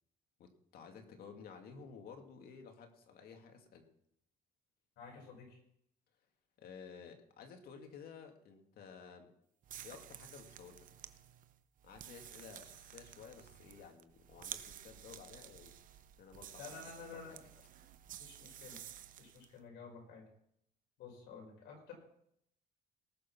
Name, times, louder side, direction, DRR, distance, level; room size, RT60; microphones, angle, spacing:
voice 1, 0.4-3.9 6.6-9.3 9.8-10.9 11.8-15.7 16.2-16.6 17.1-17.2, left 6 dB, 65° left, 4 dB, 2.3 m, -54 dB
voice 2, 5.0-5.6 16.6-17.4 18.2-18.8 19.2-20.2 21.0-21.9, left 5 dB, 80° left, 1 dB, 5.6 m, -51 dB
sound 1, 9.6-19.5, right 10 dB, 50° right, 0.8 m, -52 dB
19.0 x 6.5 x 6.1 m, 0.73 s
cardioid pair, 110°, 17 cm